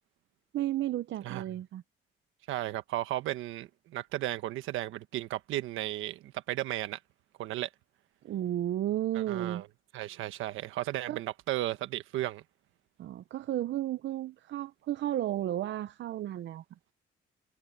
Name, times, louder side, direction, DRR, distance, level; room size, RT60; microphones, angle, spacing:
voice 1, 0.5-1.8 8.2-9.6 11.1-11.2 13.0-16.6, right 13 dB, 65° right, 0.6 m, -33 dB
voice 2, 2.5-7.0 7.4-7.7 9.1-9.7 9.9-12.4, right 14 dB, 90° right, 1.3 m, -34 dB
cardioid pair, 90°, 20 cm